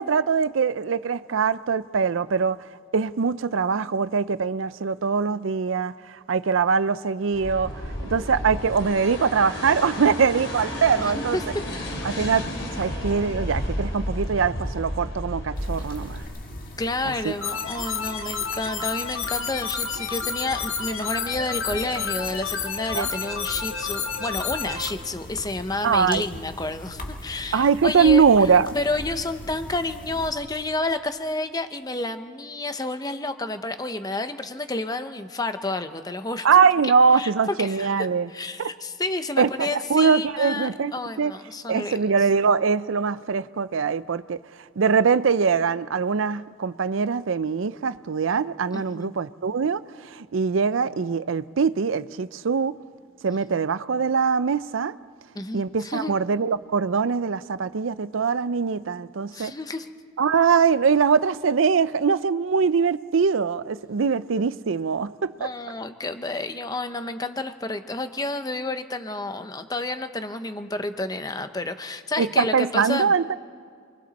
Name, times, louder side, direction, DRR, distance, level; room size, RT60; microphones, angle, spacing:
voice 1, 0.0-2.6 2.9-5.9 6.3-7.7 8.1-11.4 12.0-12.5 12.7-16.2 17.2-17.3 22.9-23.1 25.8-26.2 27.5-28.8 36.4-38.3 38.6-38.7 39.4-40.9 41.2-41.3 41.7-44.4 44.8-49.8 50.1-52.8 53.2-54.9 55.5-59.5 60.2-65.5 72.2-73.4, right 5 dB, 80° right, 0.5 m, -22 dB
sound 1, 7.3-16.2, equal, 65° left, 4.2 m, -32 dB
voice 2, 11.0-11.4 12.0-12.2 16.8-28.5 28.7-36.5 36.8-37.3 37.6-42.1 48.7-49.1 53.3-53.4 55.3-56.1 59.3-59.9 65.4-73.1, left 2 dB, 20° left, 0.8 m, -30 dB
sound 2, 15.5-30.3, left 1 dB, 45° left, 1.9 m, -41 dB
sound 3, 17.4-24.9, left 6 dB, 85° left, 1.7 m, -30 dB
28.0 x 22.5 x 4.2 m
head